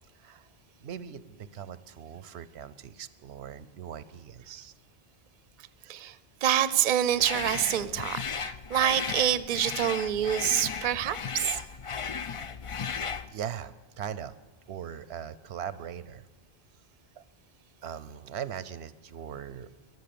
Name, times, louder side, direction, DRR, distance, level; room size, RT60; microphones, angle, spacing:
voice 1, 0.8-4.7 13.3-14.4 14.7-16.3 17.2-17.3 17.8-19.7, right 9 dB, 90° right, 16 dB, 0.9 m, -40 dB
voice 2, 6.4-11.6, right 11 dB, 55° right, 16 dB, 0.6 m, -27 dB
sound 1, 7.2-13.3, left 6 dB, 45° left, 0.4 m, -35 dB
22.0 x 8.1 x 6.9 m, 1.2 s
omnidirectional pair, 1.1 m